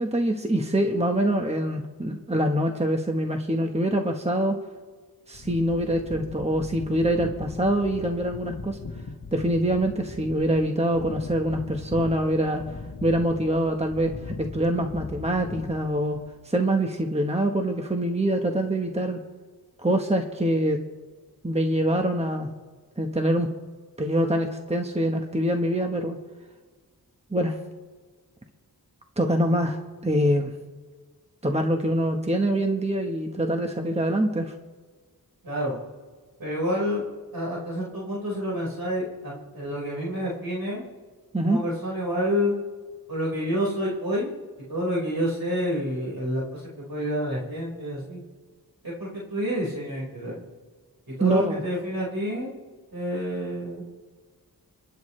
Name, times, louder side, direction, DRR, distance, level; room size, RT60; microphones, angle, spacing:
voice 1, 0.0-4.6 5.3-8.8 9.3-12.6 13.0-16.2 16.4-19.2 19.8-20.8 21.4-22.5 23.0-23.5 24.0-26.2 27.3-27.6 29.2-30.5 31.4-34.5 41.3-41.6 51.2-51.6, right 1 dB, 15° right, 3 dB, 1.3 m, -24 dB
sound 1, 5.3-16.4, left 4 dB, 60° left, 1.2 m, -40 dB
voice 2, 35.4-35.8 36.4-37.0 37.3-40.8 41.5-42.6 43.1-44.3 44.7-48.2 48.8-50.4 51.1-52.5 52.9-53.9, equal, 70° right, -5 dB, 5.0 m, -28 dB
29.5 x 10.5 x 3.3 m, 1.5 s
wide cardioid pair, 55°, 37 cm